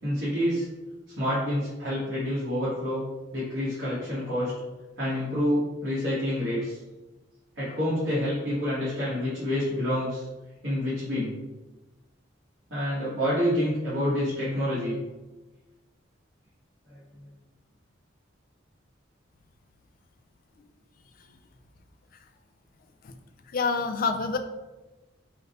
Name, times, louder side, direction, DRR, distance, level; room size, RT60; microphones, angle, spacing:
voice 1, 0.0-0.7 1.2-3.0 3.3-4.5 5.0-6.8 7.5-10.2 10.6-11.3 12.7-15.0, equal, 60° right, -10 dB, 1.3 m, -27 dB
voice 2, 23.5-24.4, left 4 dB, 45° left, 7 dB, 0.3 m, -27 dB
3.7 x 2.1 x 4.1 m, 1.1 s
head